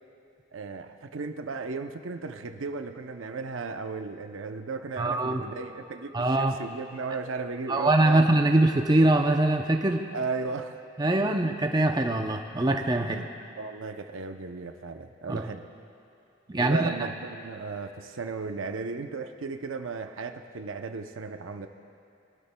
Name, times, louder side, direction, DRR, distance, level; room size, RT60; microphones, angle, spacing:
voice 1, 0.5-8.3 10.1-10.8 11.3-11.4 13.0-13.3 13.6-15.7 16.6-21.7, right 4 dB, 85° right, 7 dB, 0.6 m, -35 dB
voice 2, 5.0-5.4 6.1-6.6 7.7-10.0 11.0-13.2 15.3-15.4 16.5-16.9, right 2 dB, 20° right, 4 dB, 0.5 m, -23 dB
21.5 x 12.5 x 2.2 m, 2.8 s
head